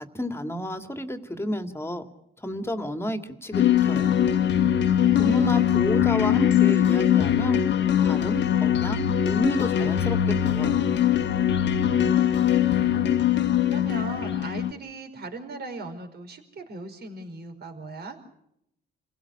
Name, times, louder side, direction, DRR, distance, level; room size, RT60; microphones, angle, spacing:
voice 1, 0.0-2.1 2.4-4.2 5.2-7.6 8.0-10.8, equal, 10° left, 7 dB, 2.4 m, -31 dB
sound 1, 3.5-14.7, left 10 dB, 65° left, 1.4 m, -22 dB
voice 2, 4.9-5.6 11.8-18.2, right 2 dB, 55° right, 6 dB, 4.9 m, -39 dB
29.0 x 16.5 x 8.7 m, 0.76 s
cardioid pair, 90°, 20 cm